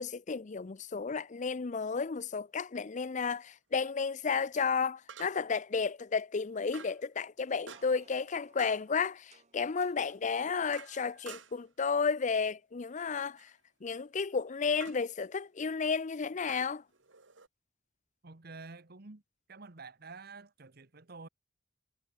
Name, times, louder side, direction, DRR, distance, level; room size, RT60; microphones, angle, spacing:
voice 1, 0.0-13.5 13.8-16.8, left 5 dB, 40° left, 0.5 m, -32 dB
sound 1, 1.4-1.5 5.1-5.6 6.7-7.1 7.7-8.1 8.6-8.9 10.1-11.7 13.1-13.5 14.8-15.1 16.5-17.5, right 5 dB, 90° right, 3.1 m, -50 dB
sound 2, 7.4-10.1, right 4 dB, 40° right, 3.8 m, -64 dB
voice 2, 18.2-19.2 19.5-21.3, right 3 dB, 55° right, 1.4 m, -49 dB
head